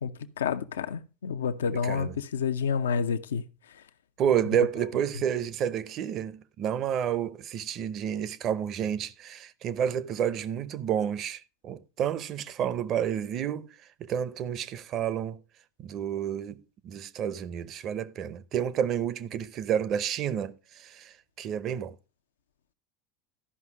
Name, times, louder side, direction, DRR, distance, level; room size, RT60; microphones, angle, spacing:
voice 1, 0.0-3.4, left 6 dB, 90° left, 0.6 m, -29 dB
voice 2, 1.7-2.2 4.2-13.7 14.0-15.4 15.8-22.0, right 9 dB, 50° right, 0.7 m, -30 dB
12.5 x 5.5 x 4.7 m
hypercardioid pair, 85°, 0 cm